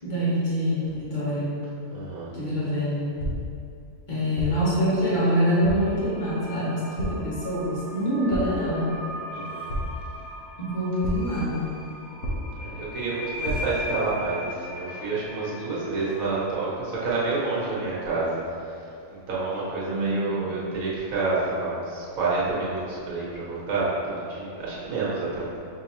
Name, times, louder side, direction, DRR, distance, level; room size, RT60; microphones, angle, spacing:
voice 1, 0.0-1.6 2.3-3.2 4.1-8.9 10.6-11.7 19.8-20.5, equal, 35° left, -9 dB, 1.1 m, -25 dB
voice 2, 1.9-2.3 9.3-9.7 12.5-18.3 18.7-18.8 19.1-25.6, right 3 dB, 70° right, -7 dB, 1.4 m, -29 dB
sound 1, 3.2-3.7 4.4-4.8 5.6-6.0 7.0-7.4 8.3-8.7 9.7-10.2 11.0-11.5 12.2-12.8 13.4-13.9, equal, 70° left, 1.2 m, -31 dB
sound 2, 5.4-16.4, left 1 dB, 5° right, 1.1 m, -39 dB
5.5 x 2.9 x 3.0 m, 2.6 s
omnidirectional pair, 1.5 m